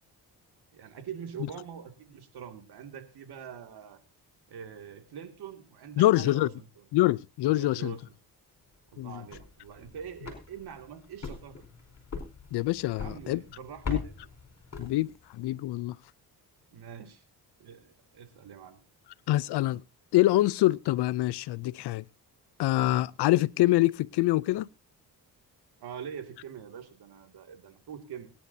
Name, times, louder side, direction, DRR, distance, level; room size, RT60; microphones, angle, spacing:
voice 1, 0.7-4.0 4.5-6.8 7.5-8.0 8.9-11.6 12.9-14.2 16.7-17.2 17.6-18.8 25.8-28.3, right 8 dB, 75° right, 2.4 m, -44 dB
voice 2, 6.0-6.5 6.9-7.9 9.0-9.2 12.5-13.4 13.9-14.0 14.8-16.0 19.3-19.8 20.1-22.0 22.6-24.7, left 16 dB, 80° left, 0.6 m, -25 dB
sound 1, 9.1-15.4, left 4 dB, 40° left, 4.6 m, -42 dB
22.0 x 10.5 x 2.7 m
cardioid pair, 90°, 39 cm